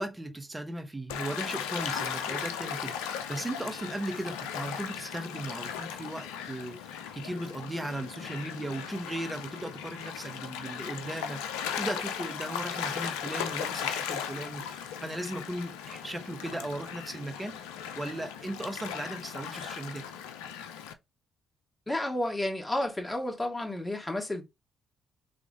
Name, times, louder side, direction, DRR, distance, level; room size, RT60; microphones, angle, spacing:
voice 1, 0.0-17.6 17.9-20.0, right 1 dB, 15° right, 1.3 m, -37 dB
Gull seagull / Waves surf, 1.1-20.9, left 8 dB, 80° left, 0.4 m, -37 dB
voice 2, 21.9-24.4, left 1 dB, 20° left, 1.9 m, -31 dB
4.0 x 3.4 x 3.7 m
hypercardioid pair, 45°, 0 cm